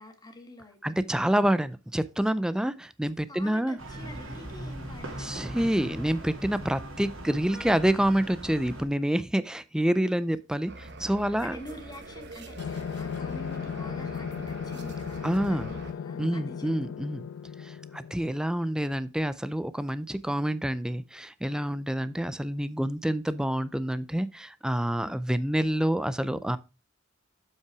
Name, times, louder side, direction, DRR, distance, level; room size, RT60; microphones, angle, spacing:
voice 1, 0.0-1.0 3.3-5.7 11.4-16.7 25.0-25.2, left 1 dB, 20° left, 1.6 m, -47 dB
voice 2, 0.8-3.8 5.2-11.6 15.2-15.7 16.2-17.3 17.6-26.6, right 1 dB, 5° right, 0.4 m, -27 dB
sound 1, 3.8-8.8, right 1 dB, 85° right, 2.8 m, -40 dB
sound 2, 10.7-15.9, right 2 dB, 55° right, 1.2 m, -44 dB
sound 3, 12.6-18.9, left 7 dB, 70° left, 0.3 m, -36 dB
7.6 x 5.8 x 4.7 m
head